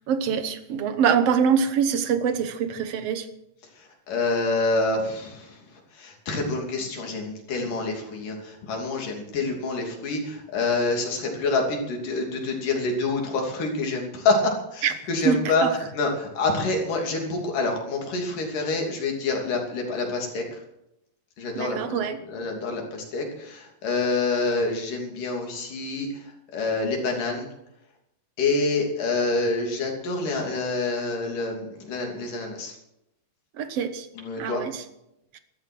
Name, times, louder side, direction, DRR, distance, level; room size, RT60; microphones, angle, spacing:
voice 1, 0.1-3.3 14.8-14.9 15.3-15.7 21.6-22.2 33.6-34.1 34.4-34.7 35.3-35.4, right 7 dB, 60° right, 10 dB, 1.8 m, -24 dB
voice 2, 3.7-20.6 21.4-27.5 28.4-32.8 34.2-34.6, left 3 dB, 90° left, 1 dB, 4.6 m, -27 dB
13.5 x 13.0 x 6.1 m, 0.82 s
omnidirectional pair, 3.6 m